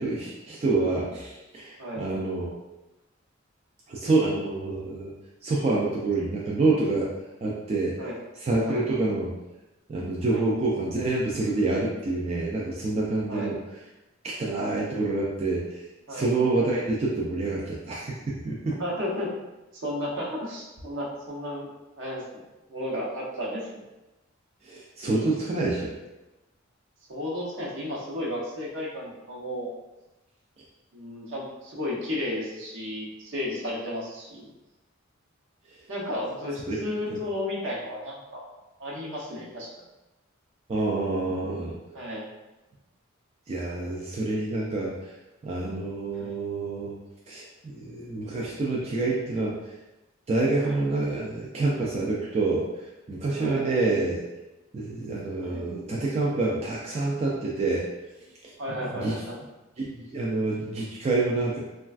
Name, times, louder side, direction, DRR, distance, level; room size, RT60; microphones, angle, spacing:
voice 1, 0.0-2.5 3.9-5.1 5.4-7.1 7.4-7.9 8.4-9.3 9.9-13.6 14.2-15.8 16.1-18.8 24.6-26.0 36.7-36.8 37.1-37.2 40.7-41.8 43.5-45.1 45.4-47.0 47.3-49.6 50.3-52.7 53.1-54.2 54.7-57.9 58.4-58.5 58.8-59.2 59.8-61.6, right 2 dB, 30° right, -4 dB, 0.3 m, -27 dB
voice 2, 18.8-19.3 19.7-21.7 22.0-23.8 27.1-29.7 30.9-34.5 35.9-38.4 38.8-39.7 41.9-42.3 46.2-46.4 50.6-50.8 53.4-53.6 55.4-55.6 58.6-59.4, left 1 dB, 65° right, -3 dB, 0.7 m, -33 dB
3.1 x 2.3 x 2.3 m, 1.0 s
head